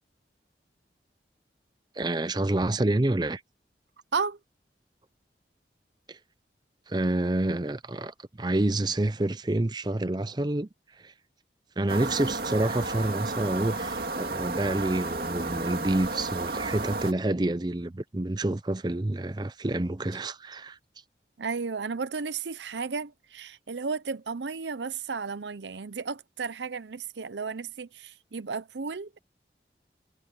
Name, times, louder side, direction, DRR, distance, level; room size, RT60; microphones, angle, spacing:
voice 1, 2.0-3.4 6.1-6.2 6.9-10.7 11.0-11.1 11.8-20.8, right 1 dB, 25° right, 0.6 m, -28 dB
sound 1, 11.9-17.1, right 3 dB, 55° right, 2.3 m, -32 dB
voice 2, 21.4-29.2, right 5 dB, 85° right, 0.7 m, -33 dB
head